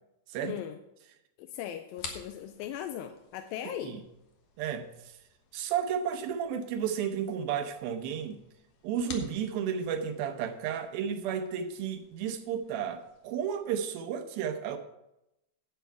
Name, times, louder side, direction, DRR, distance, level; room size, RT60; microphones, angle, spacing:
voice 1, 0.4-0.8 1.4-4.0, left 10 dB, 80° left, 7 dB, 2.2 m, -38 dB
sound 1, 2.0-13.6, left 5 dB, 60° left, 2.2 m, -51 dB
voice 2, 3.7-4.0 4.6-5.2 5.5-8.4 8.8-14.8, right 8 dB, 80° right, 7 dB, 2.6 m, -33 dB
11.5 x 8.1 x 4.5 m, 0.87 s
omnidirectional pair, 4.4 m